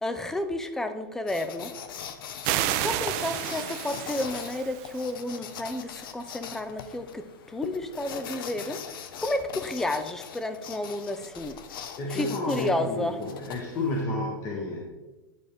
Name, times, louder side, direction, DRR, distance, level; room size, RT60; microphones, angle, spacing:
voice 1, 0.0-1.7 2.8-8.8 9.2-11.6 12.1-13.2, left 1 dB, 5° left, 10 dB, 0.4 m, -31 dB
sound 1, 1.3-14.0, left 8 dB, 70° left, 0.8 m, -41 dB
sound 2, 2.4-5.0, right 12 dB, 40° right, 0.6 m, -30 dB
voice 2, 11.7-14.9, left 2 dB, 25° left, -1 dB, 1.2 m, -31 dB
9.9 x 6.2 x 3.4 m, 1.1 s
supercardioid pair, 155°, 12 cm